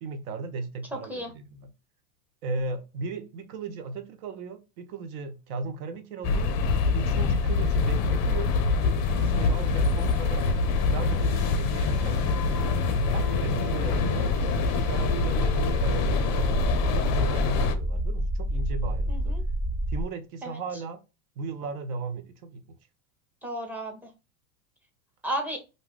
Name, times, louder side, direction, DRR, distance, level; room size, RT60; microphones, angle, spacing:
voice 1, 0.0-1.7 2.4-6.5 6.9-10.5 10.9-12.7 13.1-14.3 14.8-19.3 19.9-21.0 21.4-22.6, right 3 dB, 70° right, 0.8 m, -36 dB
sound 1, 6.2-17.7, left 4 dB, 35° left, 0.4 m, -25 dB
sound 2, 9.0-15.6, right 2 dB, 85° right, 1.1 m, -45 dB
sound 3, 13.4-20.0, right 1 dB, 25° right, 0.9 m, -30 dB
voice 2, 19.1-19.4 20.4-20.6 23.4-24.1 25.2-25.6, right 1 dB, 5° right, 0.6 m, -33 dB
2.6 x 2.2 x 3.3 m
hypercardioid pair, 110°, 46 cm